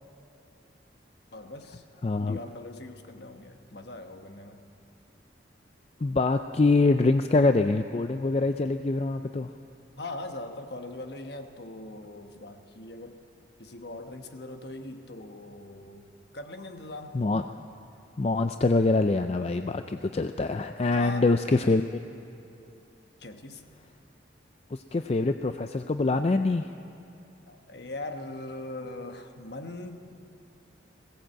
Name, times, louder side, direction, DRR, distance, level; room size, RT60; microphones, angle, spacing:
voice 1, 1.3-1.8 2.2-4.6 10.0-13.2 13.6-16.0 16.3-17.2 20.9-21.3 23.2-23.6 27.5-30.0, left 2 dB, 55° left, 6 dB, 1.2 m, -40 dB
voice 2, 2.0-2.4 6.0-9.5 17.1-17.4 18.2-22.0 24.7-26.7, left 3 dB, 30° left, 8 dB, 0.4 m, -24 dB
20.5 x 17.0 x 7.6 m, 2.7 s
head